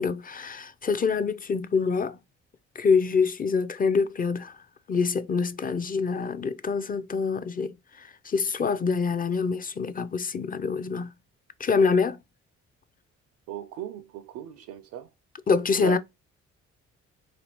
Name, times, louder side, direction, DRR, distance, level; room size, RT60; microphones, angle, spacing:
voice 1, 0.0-2.2 2.8-4.5 4.9-7.7 8.2-11.1 11.6-12.2 15.5-16.0, left 5 dB, 25° left, 0.5 m, -25 dB
voice 2, 13.5-15.1 15.7-16.0, right 10 dB, 60° right, 0.5 m, -37 dB
4.1 x 2.8 x 3.0 m
hypercardioid pair, 45°, 35 cm